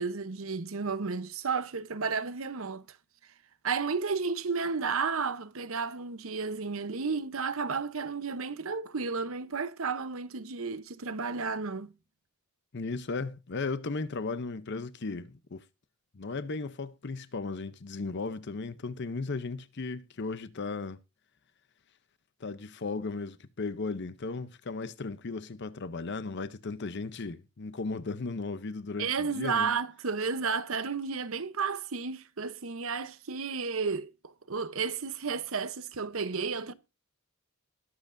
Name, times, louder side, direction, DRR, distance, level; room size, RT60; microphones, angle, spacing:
voice 1, 0.0-2.9 3.6-11.9 29.0-36.7, right 5 dB, 70° right, 0.9 m, -32 dB
voice 2, 12.7-15.6 16.1-21.0 22.4-29.7, left 3 dB, 55° left, 0.7 m, -36 dB
21.0 x 7.6 x 2.6 m
head